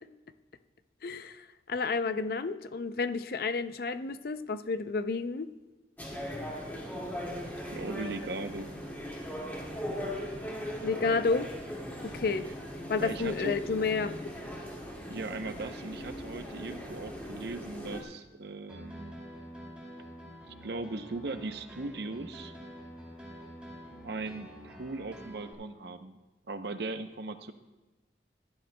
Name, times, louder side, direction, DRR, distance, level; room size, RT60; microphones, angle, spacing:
voice 1, 1.0-5.5 10.8-11.5 12.0-12.4 12.9-14.1, left 4 dB, 55° left, 12 dB, 0.5 m, -31 dB
sound 1, 6.0-18.0, equal, 10° left, 1.9 m, -39 dB
voice 2, 7.7-8.7 13.0-13.6 15.1-19.2 20.5-22.5 24.0-26.2 26.5-27.5, right 3 dB, 65° right, 9 dB, 0.6 m, -38 dB
Piano, 18.7-25.5, equal, 5° right, 2.4 m, -47 dB
16.0 x 12.0 x 2.2 m, 1.1 s
head